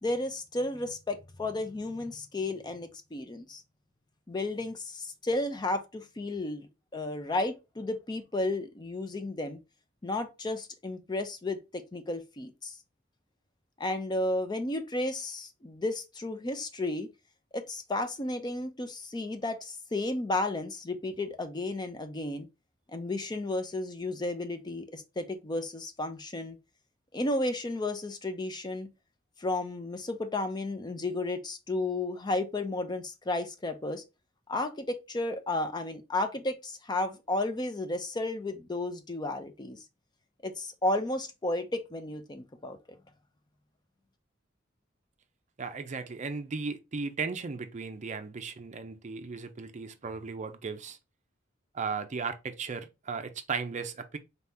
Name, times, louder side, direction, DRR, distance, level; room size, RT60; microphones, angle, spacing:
voice 1, 0.0-3.6 4.3-6.7 6.9-9.6 10.0-12.7 13.8-17.1 17.5-22.5 22.9-26.6 27.1-28.9 29.4-34.0 34.5-39.8 40.4-42.8, left 2 dB, 20° left, 0.5 m, -33 dB
voice 2, 45.6-51.0 51.7-54.2, right 5 dB, 40° right, 0.5 m, -36 dB
4.1 x 2.8 x 3.5 m
head